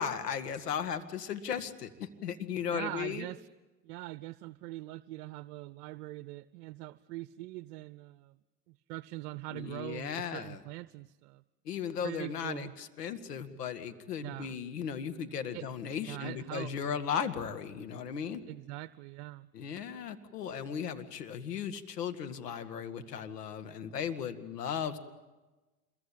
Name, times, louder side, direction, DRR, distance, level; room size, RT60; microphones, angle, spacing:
voice 1, 0.0-3.3 9.5-10.6 11.7-18.4 19.5-25.0, left 7 dB, 85° left, 9 dB, 2.2 m, -36 dB
voice 2, 2.7-3.5 3.8-8.4 8.9-11.4 12.0-12.7 14.2-14.6 15.5-15.7 16.0-16.9 18.5-19.5, right 18 dB, 65° right, 16 dB, 0.8 m, -42 dB
27.0 x 22.5 x 8.6 m, 1.2 s
hypercardioid pair, 100°, 46 cm